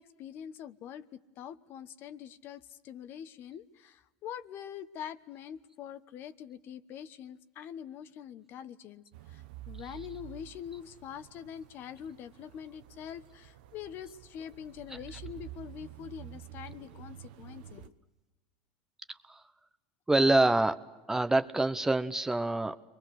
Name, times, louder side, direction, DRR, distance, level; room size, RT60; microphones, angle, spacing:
voice 1, 0.0-17.9, left 9 dB, 50° left, 12 dB, 1.1 m, -44 dB
sound 1, 9.1-17.9, right 13 dB, 75° right, 1.1 m, -49 dB
voice 2, 20.1-20.8 21.1-22.8, right 2 dB, 10° right, 10 dB, 0.9 m, -26 dB
30.0 x 23.0 x 6.4 m, 1.1 s
supercardioid pair, 100°, 5 cm